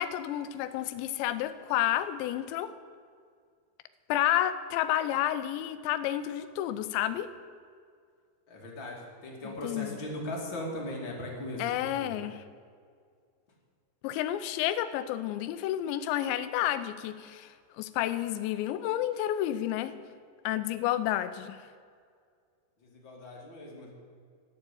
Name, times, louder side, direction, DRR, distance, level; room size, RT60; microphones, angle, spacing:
voice 1, 0.0-2.7 4.1-7.3 9.4-10.0 11.6-12.4 14.0-19.9 20.4-21.6, left 12 dB, 80° left, 12 dB, 3.0 m, -30 dB
voice 2, 8.5-12.2 22.8-23.9, left 1 dB, 30° left, -2 dB, 2.7 m, -39 dB
13.5 x 10.5 x 8.4 m, 2.1 s
omnidirectional pair, 5.2 m